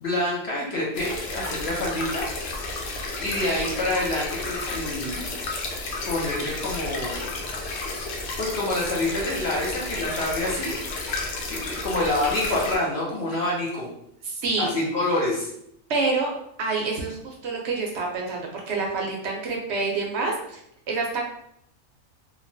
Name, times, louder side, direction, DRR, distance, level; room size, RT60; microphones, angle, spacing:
voice 1, 0.0-2.3 3.2-5.3 6.1-7.2 8.1-10.8 11.5-13.9 14.6-15.5, left 1 dB, 55° left, -3 dB, 0.8 m, -27 dB
sound 1, 0.9-12.8, left 2 dB, 90° left, 1.1 m, -32 dB
voice 2, 14.2-14.7 15.9-16.3 16.6-20.6 20.9-21.2, right 3 dB, 65° right, 0 dB, 0.7 m, -27 dB
3.0 x 2.2 x 2.5 m, 0.73 s
omnidirectional pair, 1.5 m